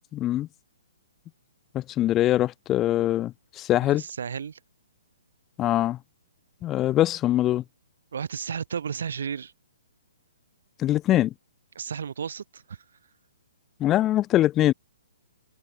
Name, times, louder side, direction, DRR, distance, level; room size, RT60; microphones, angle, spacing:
voice 1, 0.1-0.5 1.7-4.0 5.6-6.0 6.6-7.6 10.8-11.3 13.8-14.7, left 13 dB, 20° left, 0.4 m, -23 dB
voice 2, 3.9-4.6 8.1-9.5 11.7-12.8, right 7 dB, 70° right, 6.7 m, -33 dB
hypercardioid pair, 145°, 0 cm